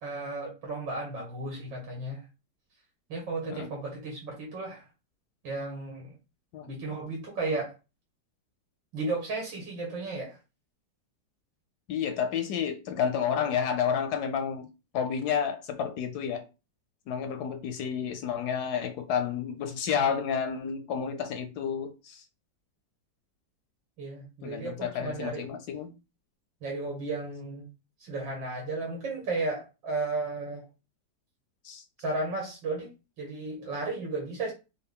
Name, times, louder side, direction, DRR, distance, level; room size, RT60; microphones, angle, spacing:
voice 1, 0.0-2.2 3.1-4.8 5.4-6.1 6.7-7.7 8.9-10.4 24.0-25.4 26.6-27.7 28.0-30.6 32.0-32.9 33.2-34.5, right 3 dB, 90° right, 2.1 m, -34 dB
voice 2, 11.9-14.7 14.9-16.4 17.1-22.2 24.4-25.9 31.6-31.8, left 7 dB, 70° left, 1.0 m, -30 dB
5.2 x 2.2 x 3.5 m
omnidirectional pair, 2.0 m